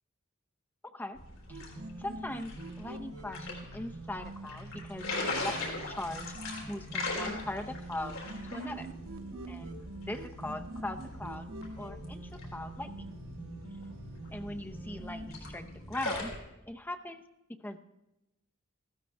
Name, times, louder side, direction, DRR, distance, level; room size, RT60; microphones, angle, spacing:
voice 1, 0.8-1.2 1.5-1.6 2.0-6.3 6.7-8.9 9.5-11.5 11.8-13.1 14.3-16.3 16.7-17.2 17.5-17.8, left 1 dB, 10° left, 6 dB, 0.6 m, -40 dB
sound 1, 1.2-16.4, left 2 dB, 75° left, 3.7 m, -41 dB
sound 2, 1.5-15.4, right 1 dB, 85° right, 1.0 m, -45 dB
14.5 x 13.0 x 3.3 m, 0.95 s
head